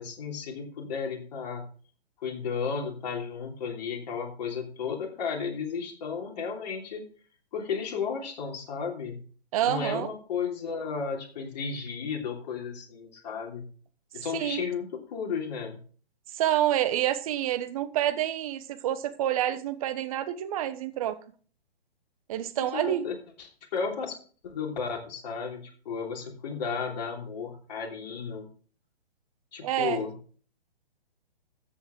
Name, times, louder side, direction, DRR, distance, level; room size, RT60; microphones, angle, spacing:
voice 1, 0.0-1.7 2.2-7.0 7.5-9.2 9.6-13.7 14.1-15.8 22.6-24.2 24.4-28.5 29.5-30.1, left 5 dB, 45° left, 3.3 m, -34 dB
voice 2, 9.5-10.1 14.1-14.6 16.3-21.2 22.3-23.1 29.6-30.0, right 12 dB, 35° right, 1.2 m, -28 dB
13.5 x 7.8 x 3.8 m
figure-of-eight pair, 130°, 31 cm